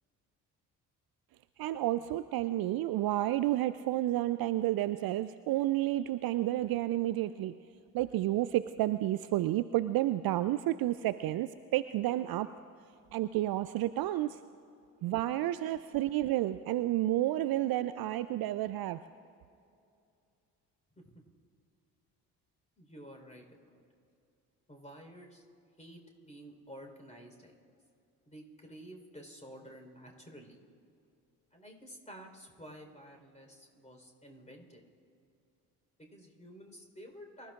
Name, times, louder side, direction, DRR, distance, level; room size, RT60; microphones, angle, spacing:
voice 1, 1.6-7.5 7.9-12.5 13.1-14.4 15.0-19.0, right 14 dB, 50° right, 13 dB, 0.5 m, -31 dB
voice 2, 15.3-15.9 21.0-21.2 22.8-23.8 24.7-25.4 25.8-27.6 28.3-30.6 31.5-34.8 36.0-37.5, equal, 15° left, 2 dB, 4.2 m, -51 dB
25.0 x 14.0 x 2.5 m, 2.5 s
hypercardioid pair, 45°, 48 cm